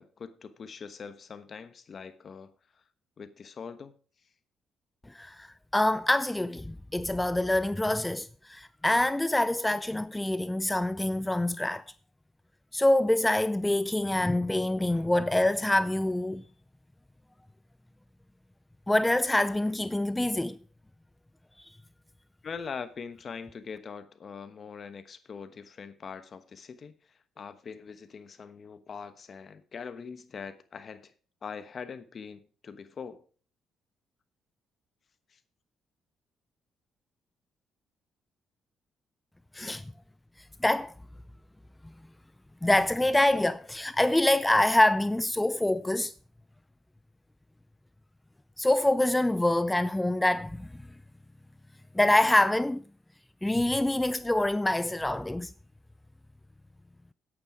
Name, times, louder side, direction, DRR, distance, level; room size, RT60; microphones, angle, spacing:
voice 1, 0.0-2.5 3.2-3.9 22.4-26.9 27.4-31.1 31.4-33.2 35.3-35.4, left 6 dB, 45° left, 1.1 m, -42 dB
voice 2, 5.1-11.8 12.7-16.4 18.9-20.6 21.6-21.7 39.5-39.8 40.6-40.9 42.6-46.1 48.6-50.8 51.9-52.8 53.4-55.5, left 1 dB, 10° left, 0.4 m, -25 dB
9.7 x 8.8 x 4.9 m
cardioid pair, 90°, 0 cm